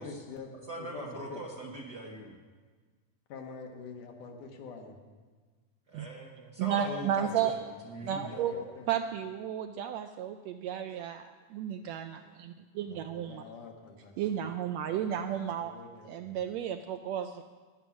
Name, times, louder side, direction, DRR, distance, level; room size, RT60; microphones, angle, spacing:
voice 1, 0.0-0.5 0.8-1.4 3.3-5.0 8.3-8.9 12.8-14.4 14.8-16.4, left 4 dB, 85° left, 2 dB, 3.0 m, -46 dB
voice 2, 0.7-2.4 5.9-7.6 7.9-8.5, right 1 dB, 55° right, 0 dB, 1.2 m, -41 dB
voice 3, 6.6-7.5 8.0-8.5 8.9-13.4 14.2-15.8 16.0-17.4, right 9 dB, 80° right, 8 dB, 1.5 m, -33 dB
16.0 x 11.0 x 6.0 m, 1.4 s
omnidirectional pair, 3.5 m